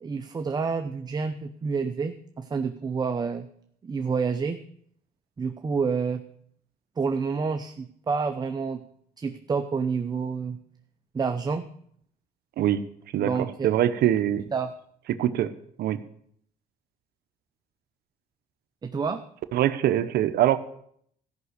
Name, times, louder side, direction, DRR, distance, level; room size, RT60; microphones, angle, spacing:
voice 1, 0.0-3.5 3.8-4.6 5.4-6.2 7.0-8.8 9.2-10.6 11.1-11.7 13.2-13.7 14.5-14.7 18.8-19.2, right 5 dB, 25° right, 7 dB, 0.7 m, -28 dB
voice 2, 13.1-14.4 15.2-15.5 15.8-16.0 19.5-20.6, right 12 dB, 70° right, 11 dB, 0.8 m, -23 dB
14.5 x 5.9 x 8.1 m, 0.66 s
cardioid pair, 110°, 17 cm